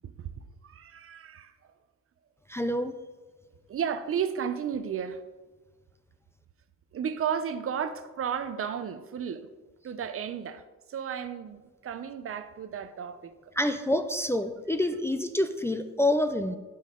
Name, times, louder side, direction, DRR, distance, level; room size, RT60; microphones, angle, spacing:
voice 1, 0.6-1.7 3.7-5.2 6.9-9.5 9.8-13.3, right 8 dB, 45° right, 0.6 m, -33 dB
voice 2, 2.5-2.9 13.5-16.6, left 1 dB, 10° left, 0.5 m, -27 dB
10.5 x 5.4 x 3.8 m
cardioid pair, 90°, 30 cm